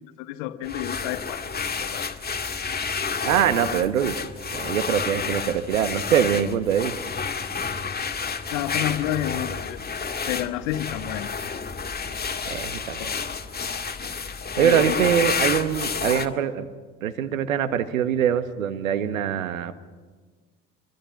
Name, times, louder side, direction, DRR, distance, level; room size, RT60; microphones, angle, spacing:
voice 1, 0.2-2.1 8.5-9.8 10.3-11.3 13.0-13.1 14.6-15.0, left 13 dB, 70° left, 10 dB, 1.7 m, -30 dB
sound 1, 0.6-16.3, left 5 dB, 25° left, 2.0 m, -30 dB
voice 2, 3.2-4.1 4.5-6.9 12.5-13.1 14.6-16.7 17.0-19.7, right 9 dB, 80° right, 10 dB, 1.6 m, -23 dB
26.5 x 24.5 x 6.0 m, 1.4 s
hypercardioid pair, 60°, 40 cm